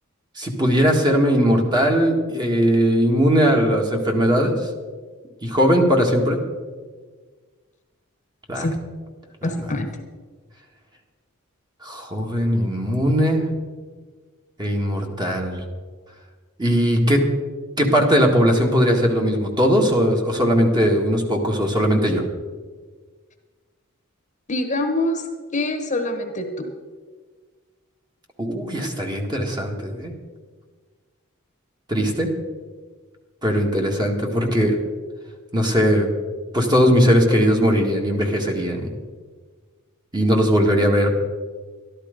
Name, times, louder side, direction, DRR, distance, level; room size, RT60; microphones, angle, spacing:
voice 1, 0.4-4.7 5.4-6.4 8.5-8.7 9.4-9.8 11.8-13.5 14.6-15.6 16.6-17.2 17.8-22.2 28.4-30.1 31.9-32.3 33.4-34.8 35.5-36.1 36.5-38.9 40.1-41.1, equal, 20° right, 1 dB, 1.8 m, -19 dB
voice 2, 9.4-9.9 24.5-25.2 25.5-26.7, left 1 dB, 35° left, 6 dB, 1.2 m, -24 dB
13.0 x 12.0 x 5.2 m, 1.5 s
head